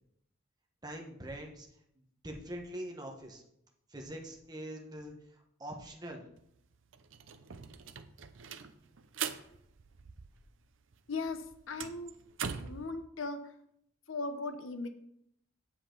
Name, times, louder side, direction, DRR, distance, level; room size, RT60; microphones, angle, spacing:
voice 1, 0.8-1.7 2.2-3.4 3.9-6.2, right 1 dB, 20° right, 1 dB, 1.3 m, -43 dB
sound 1, 6.4-6.5 6.7-10.7 10.9-12.9, right 7 dB, 75° right, 0.6 m, -42 dB
voice 2, 11.1-12.1 12.6-13.5 14.1-14.9, left 3 dB, 80° left, 9 dB, 0.9 m, -38 dB
8.5 x 7.6 x 3.9 m, 0.74 s
head